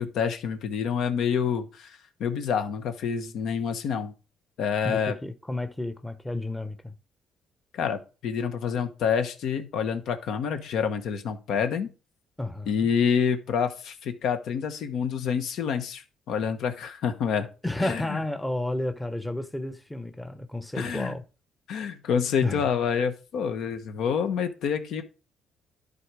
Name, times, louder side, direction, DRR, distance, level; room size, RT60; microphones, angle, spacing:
voice 1, 0.0-4.1 4.6-5.1 7.7-11.9 12.7-17.5 17.8-18.2 20.7-21.1 21.7-25.0, left 7 dB, 70° left, 1.1 m, -27 dB
voice 2, 4.8-6.9 12.4-12.9 17.6-21.2 22.4-22.7, left 1 dB, 5° left, 0.8 m, -31 dB
11.0 x 4.0 x 4.8 m
cardioid pair, 100°, 0 cm